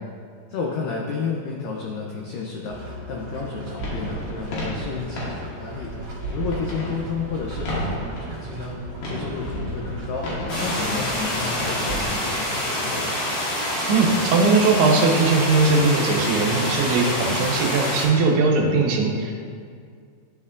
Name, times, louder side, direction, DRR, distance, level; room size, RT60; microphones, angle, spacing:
voice 1, 0.5-5.9 6.3-10.3 10.6-13.2, left 5 dB, 90° left, -1 dB, 1.9 m, -31 dB
sound 1, 2.7-10.8, equal, 65° right, 1.7 m, -38 dB
sound 2, 3.8-12.0, right 1 dB, 75° left, 3.2 m, -32 dB
sound 3, 10.5-18.1, left 1 dB, 55° left, 1.8 m, -26 dB
voice 2, 13.9-19.3, right 3 dB, 90° right, 0 dB, 2.8 m, -19 dB
12.0 x 4.3 x 2.4 m, 2.1 s
omnidirectional pair, 4.6 m